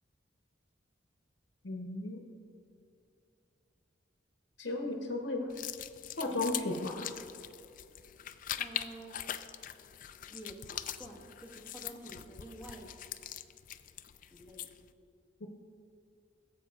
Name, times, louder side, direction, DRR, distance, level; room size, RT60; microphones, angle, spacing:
voice 1, 1.6-2.2 4.6-5.5 6.2-7.1 15.4-15.5, left 2 dB, 80° left, 1 dB, 0.9 m, -35 dB
sound 1, 5.5-14.9, left 11 dB, 45° left, 0.4 m, -42 dB
voice 2, 8.6-9.2 10.3-13.0 14.3-14.7, right 1 dB, 10° right, -2 dB, 1.4 m, -49 dB
17.0 x 7.9 x 2.4 m, 2.7 s
head